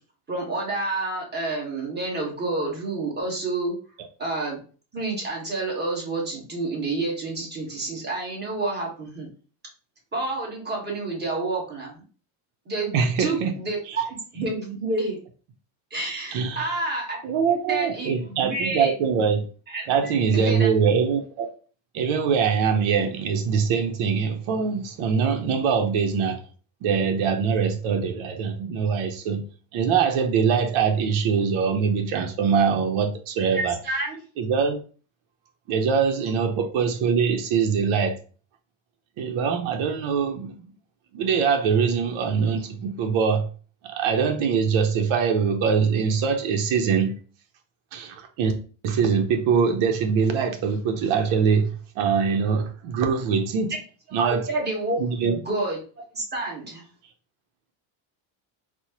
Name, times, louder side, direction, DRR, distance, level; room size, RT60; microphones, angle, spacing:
voice 1, 0.3-3.7 4.2-4.6 4.9-9.3 10.1-12.0 12.7-15.2 15.9-18.9 19.7-20.7 33.5-34.2 54.1-55.8 56.1-56.8, right 2 dB, 20° right, 1.3 m, -29 dB
voice 2, 12.9-13.5 13.9-14.0 16.3-16.8 17.2-19.4 19.9-21.5 21.9-26.4 26.8-29.4 29.7-33.8 34.4-34.8 35.7-38.2 39.2-40.5 41.1-43.5 43.8-47.1 47.9-48.5 48.8-53.7 54.1-54.5 55.0-55.3, right 6 dB, 75° right, 0.7 m, -23 dB
4.2 x 2.0 x 2.9 m
cardioid pair, 135°, 49 cm